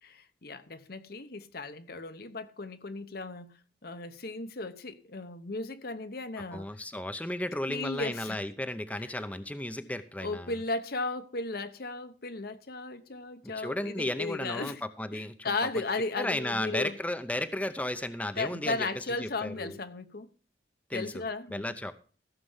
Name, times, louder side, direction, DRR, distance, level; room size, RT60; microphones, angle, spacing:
voice 1, 0.0-3.5 3.8-6.7 7.7-8.4 9.0-9.1 10.2-14.8 15.1-17.0 18.4-20.3 20.9-21.6, left 3 dB, 60° left, 1.0 m, -35 dB
voice 2, 6.5-10.5 13.6-15.5 16.2-18.9 19.2-19.8 20.9-21.1 21.5-21.9, left 1 dB, 10° left, 0.7 m, -34 dB
15.0 x 6.8 x 5.5 m
head